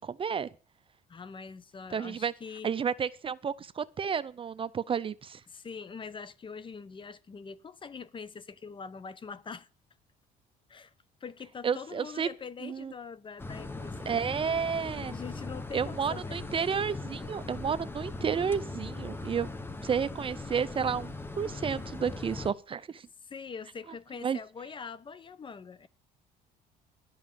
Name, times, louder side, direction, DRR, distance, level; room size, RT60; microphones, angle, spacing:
voice 1, 0.0-0.5 1.9-2.3 2.6-5.4 11.6-12.3 12.6-12.9 14.1-15.1 15.7-19.5 19.8-23.1 24.2-24.4, right 7 dB, 30° right, 0.5 m, -31 dB
voice 2, 1.1-2.7 5.5-9.7 10.7-10.9 11.2-14.3 15.1-16.4 23.2-25.9, left 5 dB, 30° left, 0.7 m, -43 dB
sound 1, 13.4-22.5, left 2 dB, 15° left, 1.0 m, -39 dB
11.5 x 5.4 x 8.9 m
cardioid pair, 110°, 17 cm